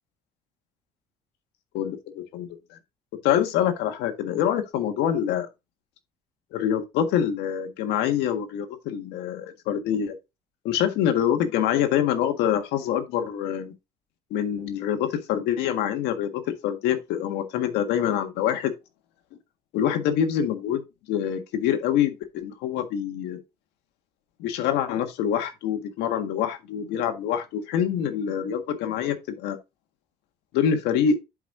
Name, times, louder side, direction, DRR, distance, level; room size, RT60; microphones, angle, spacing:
voice 1, 1.7-2.8 3.2-5.5 6.5-10.2 10.6-13.7 14.3-18.7 19.7-20.8 21.1-23.4 24.4-29.6 30.5-31.2, left 9 dB, 90° left, 1.6 m, -25 dB
11.0 x 5.2 x 2.6 m
cardioid pair, 110°, 17 cm